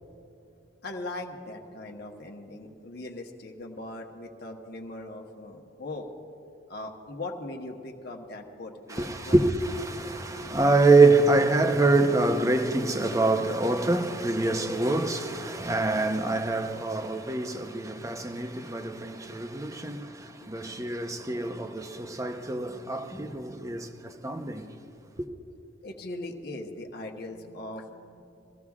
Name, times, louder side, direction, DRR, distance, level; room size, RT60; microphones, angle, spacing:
voice 1, 0.8-6.1 6.7-9.4 25.8-28.2, left 2 dB, 55° left, 1.2 m, -39 dB
voice 2, 8.9-24.7 25.2-25.3, right 2 dB, 15° right, 0.7 m, -25 dB
23.5 x 16.0 x 2.4 m
head